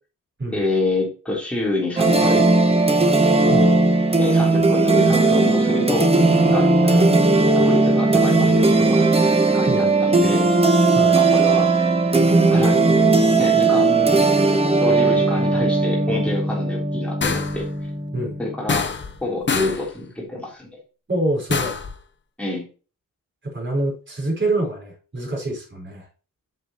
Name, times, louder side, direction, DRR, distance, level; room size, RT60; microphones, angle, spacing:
voice 1, 0.5-2.5 4.2-7.1 7.5-9.1 9.5-10.5 11.2-11.7 12.5-12.9 13.4-14.3 14.8-17.7 18.4-18.9 19.2-20.8 22.4-22.6, left 2 dB, 5° left, -4 dB, 3.7 m, -27 dB
sound 1, 2.0-18.6, right 3 dB, 15° right, 1.2 m, -17 dB
sound 2, 17.2-17.7 18.7-19.2 19.5-19.9 21.5-21.9, left 5 dB, 35° left, 0.8 m, -25 dB
voice 2, 21.1-21.8 23.4-26.0, right 2 dB, 35° right, -1 dB, 4.8 m, -25 dB
8.3 x 7.3 x 3.1 m, 0.35 s
wide cardioid pair, 135°, 34 cm